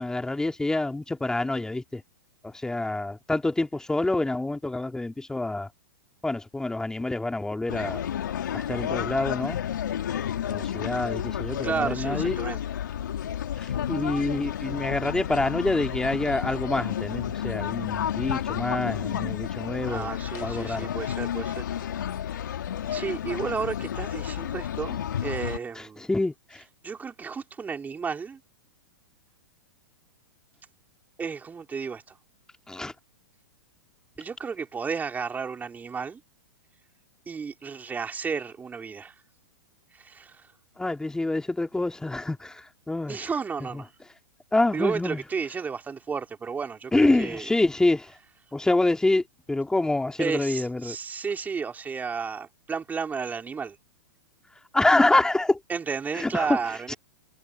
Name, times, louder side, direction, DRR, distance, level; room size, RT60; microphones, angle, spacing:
voice 1, 0.0-2.0 2.4-5.7 6.2-8.0 8.5-9.6 10.5-12.4 13.6-20.1 20.4-20.9 25.7-26.6 32.7-32.9 40.8-43.3 43.7-43.8 44.5-45.2 46.9-48.2 48.5-51.0 54.7-55.6 56.1-56.6 56.9-57.0, left 2 dB, 5° left, 2.8 m, -26 dB
sound 1, 7.7-25.6, left 9 dB, 70° left, 3.6 m, -31 dB
voice 2, 11.6-12.6 19.9-21.7 22.9-26.1 26.8-28.4 31.2-32.2 34.2-36.2 37.3-39.2 39.9-40.5 43.1-43.9 44.7-47.5 50.2-53.8 55.7-57.0, right 5 dB, 15° right, 4.1 m, -32 dB
hypercardioid pair, 110°, 11 cm